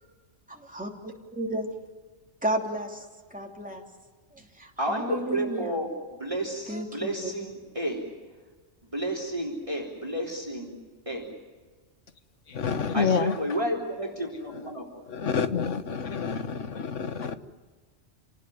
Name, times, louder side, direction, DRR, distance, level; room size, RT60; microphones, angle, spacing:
voice 1, 0.5-1.7 2.4-3.8 4.3-5.8 6.7-7.3, right 1 dB, 5° right, 3.0 m, -33 dB
voice 2, 4.8-8.1 8.8-10.8 11.1-11.2 12.9-14.9, right 1 dB, 25° right, 3.8 m, -31 dB
voice 3, 12.5-13.3 15.1-17.4, left 6 dB, 80° left, 1.6 m, -28 dB
28.5 x 19.0 x 9.3 m
omnidirectional pair, 1.2 m